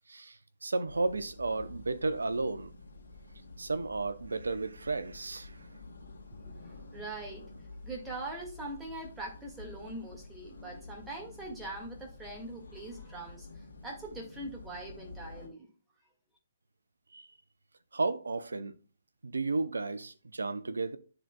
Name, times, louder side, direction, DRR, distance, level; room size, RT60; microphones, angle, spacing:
voice 1, 0.1-2.7 3.6-5.6 17.1-17.3 17.9-18.7 19.2-21.0, right 3 dB, 75° right, 0.6 m, -33 dB
sound 1, 0.9-15.5, left 3 dB, 75° left, 1.8 m, -49 dB
voice 2, 6.9-7.4 7.8-13.5 13.8-15.7, right 2 dB, 10° right, 1.8 m, -42 dB
11.0 x 3.9 x 2.2 m
figure-of-eight pair, 130°, 0 cm